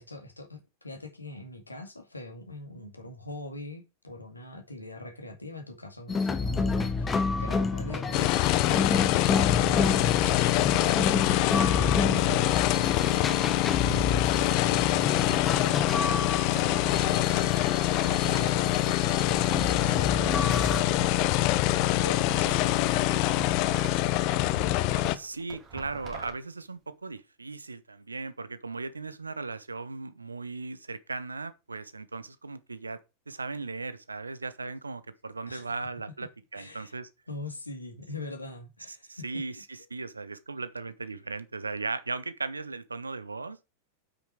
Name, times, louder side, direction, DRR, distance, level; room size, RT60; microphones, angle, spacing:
voice 1, 0.0-9.9 22.0-23.3 35.5-35.7 36.5-36.9 37.3-39.2, left 1 dB, 85° left, 2.1 m, -42 dB
sound 1, 6.1-20.8, left 4 dB, 20° left, 1.1 m, -30 dB
sound 2, 8.1-25.2, left 15 dB, 45° left, 0.6 m, -25 dB
sound 3, 16.1-17.4 17.7-21.2 21.7-24.0 24.3-26.3, right 4 dB, 30° right, 2.6 m, -44 dB
voice 2, 25.1-33.0 33.3-37.1 38.9-39.6 39.9-43.6, right 3 dB, 80° right, 0.7 m, -37 dB
8.3 x 6.2 x 4.7 m
figure-of-eight pair, 90°, 0 cm